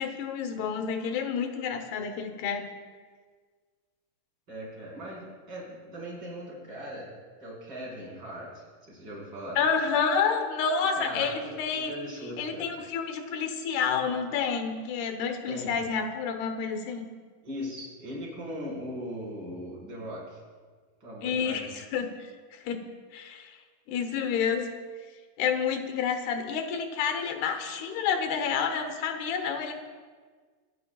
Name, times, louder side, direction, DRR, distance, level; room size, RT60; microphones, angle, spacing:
voice 1, 0.0-2.7 9.6-11.9 12.4-17.1 21.2-22.8 23.1-23.6 23.9-24.7 25.4-29.7, left 6 dB, 85° left, 6 dB, 3.2 m, -29 dB
voice 2, 4.5-7.1 7.4-9.6 10.9-12.7 15.5-15.7 17.4-20.4 21.0-21.8, equal, 25° right, -5 dB, 5.2 m, -39 dB
24.5 x 15.5 x 2.4 m, 1.5 s
omnidirectional pair, 4.5 m